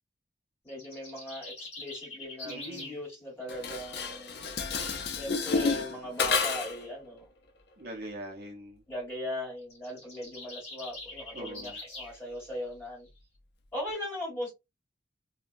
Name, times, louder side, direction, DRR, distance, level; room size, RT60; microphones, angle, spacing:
voice 1, 0.6-4.4 5.1-7.2 8.9-13.1 13.7-14.5, left 1 dB, 10° left, 1.6 m, -39 dB
sound 1, 0.7-3.0 9.6-12.1, left 2 dB, 30° left, 1.1 m, -44 dB
voice 2, 2.4-3.0 7.8-8.8 11.3-11.8, right 1 dB, 50° right, 0.6 m, -42 dB
Dishes pots and pans, 3.5-6.9, left 4 dB, 55° left, 0.5 m, -30 dB
2.6 x 2.1 x 2.4 m
head